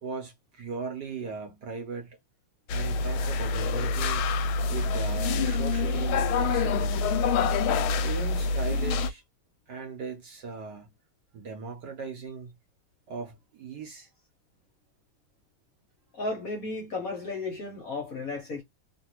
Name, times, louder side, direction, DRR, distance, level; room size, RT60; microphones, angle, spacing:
voice 1, 0.0-2.2 2.7-4.3 4.7-7.1 8.0-9.2 9.7-10.9 11.3-12.5 13.1-14.1, right 5 dB, 60° right, 1.2 m, -38 dB
sound 1, 2.7-9.1, left 4 dB, 75° left, 1.3 m, -26 dB
voice 2, 16.1-18.6, left 3 dB, 55° left, 1.1 m, -34 dB
3.2 x 2.5 x 2.9 m
omnidirectional pair, 2.4 m